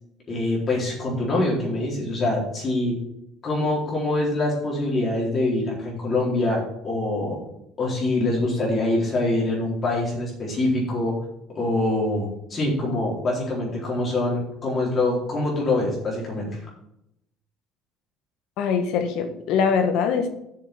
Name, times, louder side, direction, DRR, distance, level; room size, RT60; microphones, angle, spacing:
voice 1, 0.3-3.0 3.4-7.4 7.8-11.1 11.5-16.6, left 2 dB, 25° left, -4 dB, 4.0 m, -24 dB
voice 2, 18.6-20.3, left 6 dB, 60° left, 6 dB, 1.5 m, -22 dB
7.3 x 6.6 x 6.8 m, 0.80 s
cardioid pair, 165°, 0 cm